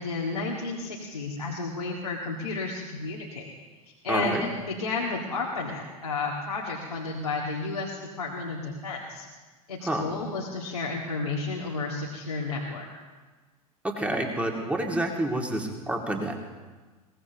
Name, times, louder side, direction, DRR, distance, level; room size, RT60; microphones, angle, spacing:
voice 1, 0.0-3.5 4.0-9.3 9.7-12.9, left 3 dB, 80° left, -3 dB, 2.2 m, -32 dB
voice 2, 4.1-4.4 9.8-10.0 13.8-16.5, right 1 dB, 5° right, 1 dB, 2.4 m, -28 dB
22.5 x 18.0 x 3.0 m, 1.3 s
figure-of-eight pair, 85°, 19 cm